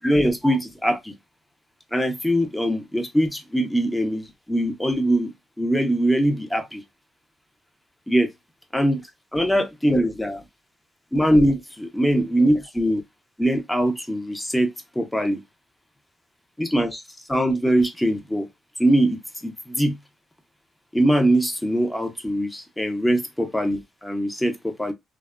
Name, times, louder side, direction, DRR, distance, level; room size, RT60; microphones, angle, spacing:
voice 1, 0.0-1.1 1.9-5.3 5.6-6.8 8.1-8.3 8.7-9.0 9.3-10.4 11.1-13.0 13.4-15.4 16.6-17.0 17.3-18.5 18.8-19.9 20.9-24.9, right 1 dB, 5° left, 0.7 m, -22 dB
2.8 x 2.3 x 2.3 m
cardioid pair, 90°, 0 cm